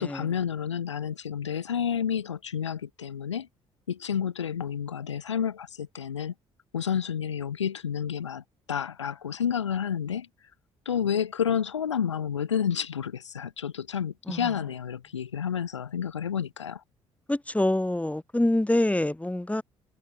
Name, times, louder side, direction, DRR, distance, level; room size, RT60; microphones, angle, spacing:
voice 1, 0.0-3.5 3.9-6.3 6.7-10.3 10.8-16.8, left 8 dB, 90° left, 1.3 m, -30 dB
voice 2, 17.3-19.6, left 1 dB, 10° left, 3.3 m, -26 dB
figure-of-eight pair, 45°, 15 cm